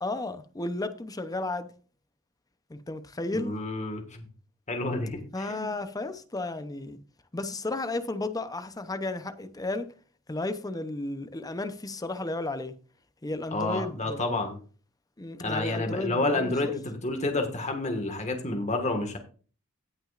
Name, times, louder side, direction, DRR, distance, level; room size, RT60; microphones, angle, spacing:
voice 1, 0.0-1.7 2.7-3.6 5.3-7.0 7.3-9.9 10.3-12.7 13.2-14.2 15.2-16.7, left 2 dB, 15° left, 0.7 m, -33 dB
voice 2, 3.3-4.2 4.7-5.7 13.5-14.6 15.4-19.2, left 2 dB, 35° left, 1.7 m, -29 dB
17.5 x 6.1 x 2.5 m
head